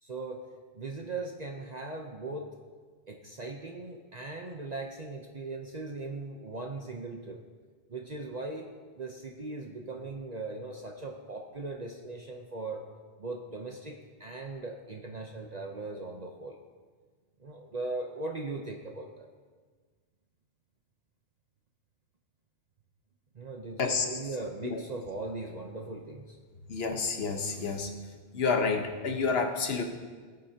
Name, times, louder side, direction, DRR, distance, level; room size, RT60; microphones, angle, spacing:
voice 1, 0.0-2.5 3.1-7.4 7.9-12.9 13.2-16.6 17.4-19.3 23.3-26.4, right 3 dB, 40° right, 2 dB, 0.9 m, -39 dB
voice 2, 23.8-24.2 24.6-24.8 26.7-27.9 28.3-29.8, left 4 dB, 65° left, 4 dB, 1.4 m, -29 dB
20.0 x 9.5 x 2.9 m, 1.5 s
omnidirectional pair, 1.1 m